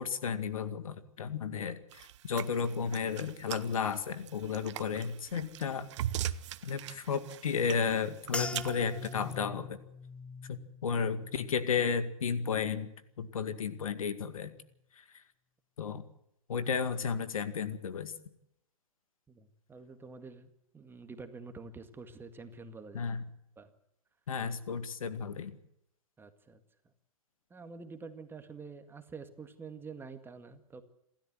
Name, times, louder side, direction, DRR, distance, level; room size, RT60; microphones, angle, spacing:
voice 1, 0.0-5.9 6.6-9.8 10.5-12.9 13.2-14.5 14.9-15.2 15.8-16.0 16.5-18.1 22.9-23.2 24.3-25.6, left 6 dB, 75° left, 11 dB, 2.1 m, -33 dB
sound 1, 1.9-9.3, right 12 dB, 55° right, 1.0 m, -41 dB
sound 2, 8.3-12.9 13.2-13.8 14.4-14.7, left 3 dB, 5° left, 0.8 m, -43 dB
voice 2, 19.3-23.1 23.6-23.7 26.2-26.6 27.5-30.8, right 4 dB, 10° right, 8 dB, 1.9 m, -47 dB
27.5 x 13.0 x 7.8 m, 0.78 s
hypercardioid pair, 115°, 18 cm